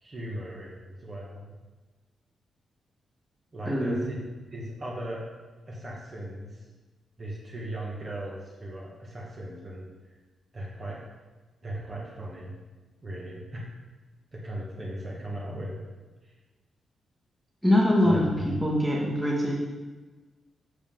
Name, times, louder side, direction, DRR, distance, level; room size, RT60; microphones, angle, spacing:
voice 1, 0.0-1.5 3.5-4.2 4.5-5.2 5.7-6.6 7.2-9.9 10.5-11.0 11.6-12.5 13.0-13.7 14.3-15.8 18.0-18.6, right 1 dB, 25° right, -4 dB, 1.4 m, -37 dB
voice 2, 3.6-4.1 17.6-18.2 18.6-19.5, left 1 dB, ahead, -5 dB, 1.5 m, -23 dB
8.1 x 7.0 x 3.7 m, 1.3 s
wide cardioid pair, 175°, 0 cm